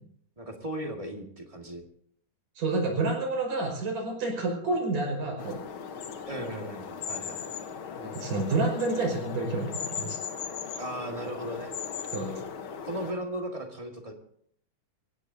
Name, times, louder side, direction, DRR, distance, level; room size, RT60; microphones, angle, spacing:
voice 1, 0.4-1.8 6.3-7.5 10.8-11.7 12.8-14.1, right 1 dB, 20° right, 2 dB, 1.1 m, -36 dB
voice 2, 2.6-5.5 8.0-10.2 12.1-12.4, right 2 dB, 85° right, 0 dB, 7.0 m, -29 dB
sound 1, 5.4-13.1, left 7 dB, 60° left, 1.4 m, -38 dB
25.0 x 16.0 x 2.8 m, 0.65 s
omnidirectional pair, 3.7 m